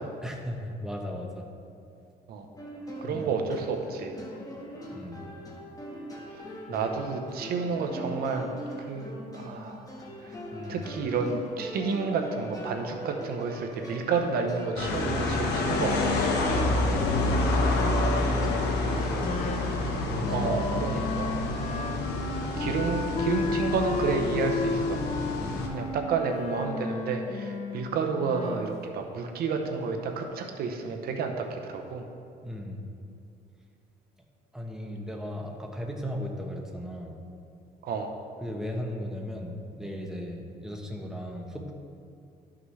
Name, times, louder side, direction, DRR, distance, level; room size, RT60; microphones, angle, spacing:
voice 1, 0.2-1.4 3.1-3.3 4.9-5.3 6.7-6.9 10.5-10.8 16.5-17.4 18.2-19.4 20.1-20.5 21.9-22.1 25.4-25.6 32.4-32.8 34.5-37.2 38.4-41.7, equal, 5° right, 1 dB, 1.0 m, -37 dB
sound 1, 2.6-17.1, equal, 20° left, 1.4 m, -41 dB
voice 2, 3.0-4.1 6.7-8.5 8.9-9.9 10.2-10.4 10.7-16.2 20.3-21.5 22.6-25.0 25.7-32.1 37.8-38.1, right 5 dB, 65° right, 4 dB, 0.8 m, -30 dB
sound 2, 14.8-25.7, left 2 dB, 80° left, 1.2 m, -28 dB
Wind instrument woodwind instrument, 19.2-28.7, left 3 dB, 40° left, 0.7 m, -33 dB
12.5 x 5.9 x 3.2 m, 2.5 s
cardioid pair, 110°, 17 cm